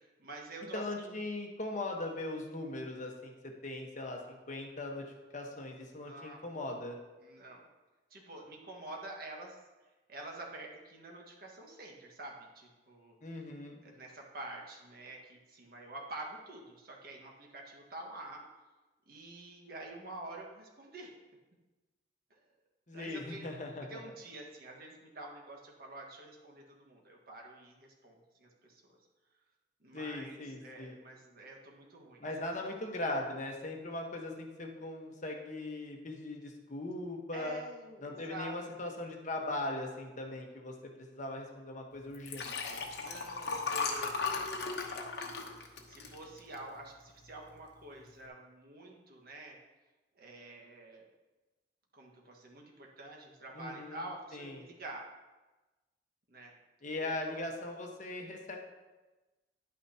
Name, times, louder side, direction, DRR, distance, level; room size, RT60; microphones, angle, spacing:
voice 1, 0.0-1.2 6.0-6.5 7.2-7.7 8.1-9.6 10.1-13.1 13.8-18.4 19.0-21.1 22.3-22.4 22.9-23.5 23.9-29.0 29.8-32.3 37.3-38.7 43.0-49.6 50.1-51.1 51.9-55.1 56.3-56.6 56.9-57.4, right 2 dB, 60° right, -1 dB, 1.7 m, -48 dB
voice 2, 0.7-3.3 3.6-5.0 5.3-7.0 13.2-13.8 22.9-24.0 29.9-31.0 32.2-37.6 38.0-42.8 53.5-54.0 54.3-54.6 56.8-58.6, left 2 dB, 45° left, 1 dB, 1.2 m, -39 dB
Liquid, 42.1-46.8 47.3-47.5 47.8-47.9, left 4 dB, 65° left, 1.1 m, -36 dB
10.5 x 9.0 x 2.9 m, 1.1 s
head